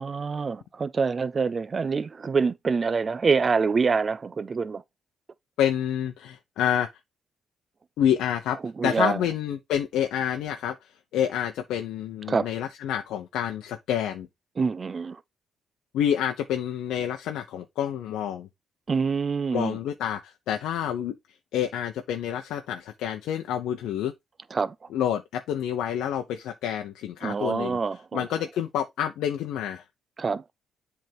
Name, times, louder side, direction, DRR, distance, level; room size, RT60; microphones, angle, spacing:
voice 1, 0.0-4.8 8.6-9.2 12.3-12.5 14.6-15.2 18.9-19.8 24.5-24.7 27.2-28.3 30.2-30.5, right 5 dB, 35° right, 0.6 m, -26 dB
voice 2, 5.6-6.9 8.0-8.6 8.8-14.3 15.9-18.5 19.5-21.2 21.5-24.1 24.9-27.8 28.1-29.8, left 10 dB, 85° left, 0.7 m, -28 dB
7.7 x 3.6 x 4.5 m
cardioid pair, 90°, 0 cm